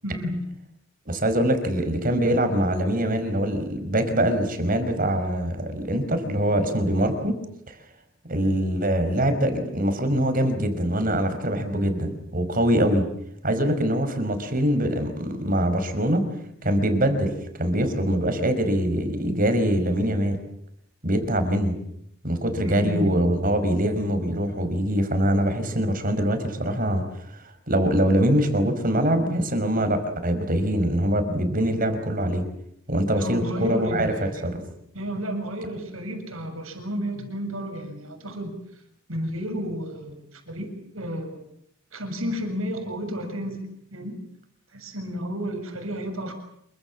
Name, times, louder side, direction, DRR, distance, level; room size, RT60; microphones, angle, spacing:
voice 1, 0.0-0.4 22.6-23.2 33.1-34.5 34.9-38.5 39.1-41.4 41.9-43.6 43.9-44.2 44.7-46.3, equal, 90° right, 5 dB, 7.1 m, -31 dB
voice 2, 1.1-7.4 7.7-7.8 8.3-13.1 13.4-16.3 16.6-17.3 17.6-20.4 21.0-21.7 22.2-27.0 27.7-32.5 32.9-34.6, right 1 dB, 45° right, 8 dB, 5.2 m, -23 dB
28.0 x 24.5 x 7.4 m, 0.73 s
head